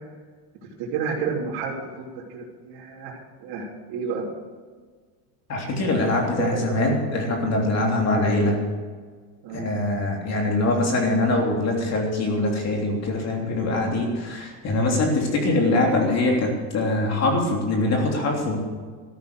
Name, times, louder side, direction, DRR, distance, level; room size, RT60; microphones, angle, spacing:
voice 1, 0.8-4.2 6.4-6.8 9.4-9.7, right 5 dB, 50° right, -5 dB, 3.4 m, -31 dB
voice 2, 5.5-8.6 9.5-18.6, left 2 dB, 30° left, 0 dB, 3.2 m, -23 dB
14.0 x 11.5 x 6.3 m, 1.5 s
cardioid pair, 150°, 48 cm